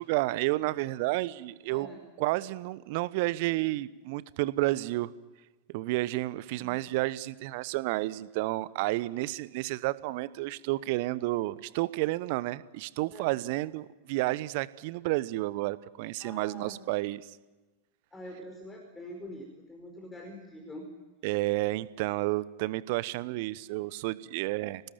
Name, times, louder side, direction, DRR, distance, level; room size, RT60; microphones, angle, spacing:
voice 1, 0.0-1.9 2.2-5.1 5.7-17.2 21.2-24.8, right 19 dB, 50° right, 18 dB, 1.0 m, -31 dB
voice 2, 16.2-16.8 18.1-20.9, left 1 dB, 10° left, 3 dB, 5.0 m, -45 dB
27.5 x 19.5 x 9.2 m, 1.2 s
figure-of-eight pair, 90°, 0 cm